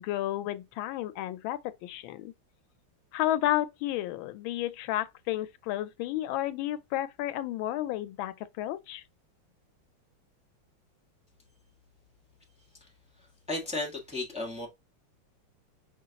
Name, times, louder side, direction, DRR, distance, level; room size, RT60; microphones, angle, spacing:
voice 1, 0.0-2.3 3.1-9.0, left 13 dB, 90° left, 1.4 m, -32 dB
voice 2, 13.5-14.7, left 2 dB, 5° right, 1.0 m, -34 dB
5.6 x 3.1 x 2.8 m
omnidirectional pair, 2.1 m